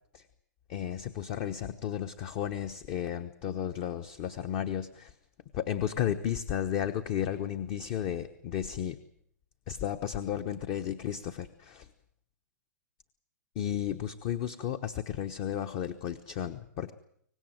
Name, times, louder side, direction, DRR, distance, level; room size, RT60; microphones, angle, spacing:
voice 1, 0.7-5.1 5.5-9.0 9.7-11.9 13.5-16.9, left 10 dB, 35° left, 9 dB, 1.1 m, -33 dB
24.5 x 18.5 x 7.9 m, 0.67 s
hypercardioid pair, 150°, 9 cm